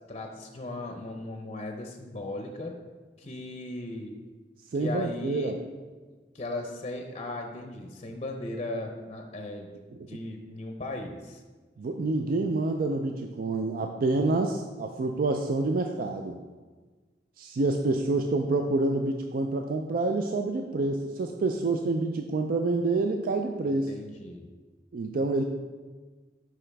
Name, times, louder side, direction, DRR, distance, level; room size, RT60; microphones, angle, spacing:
voice 1, 0.1-2.7 3.2-4.1 4.8-5.5 6.3-9.7 10.1-11.4 23.7-24.5, left 2 dB, 35° left, 4 dB, 0.6 m, -37 dB
voice 2, 4.7-5.6 11.8-16.4 17.4-23.9 24.9-25.4, right 2 dB, 55° right, 4 dB, 0.4 m, -27 dB
8.6 x 4.7 x 3.4 m, 1.4 s
head